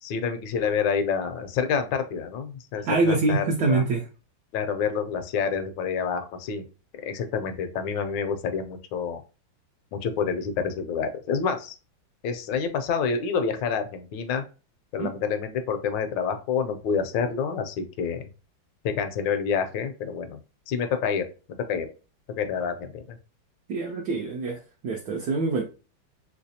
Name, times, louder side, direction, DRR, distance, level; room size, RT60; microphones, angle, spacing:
voice 1, 0.0-3.8 4.5-6.7 7.0-9.2 9.9-11.8 12.2-14.4 14.9-18.2 18.8-20.4 20.7-21.2 21.7-21.9 22.4-23.2, left 6 dB, 75° left, 8 dB, 1.2 m, -28 dB
voice 2, 2.8-4.0 15.0-15.1 23.7-25.6, right 3 dB, 70° right, 1 dB, 1.0 m, -25 dB
3.3 x 3.0 x 2.7 m, 0.34 s
omnidirectional pair, 2.1 m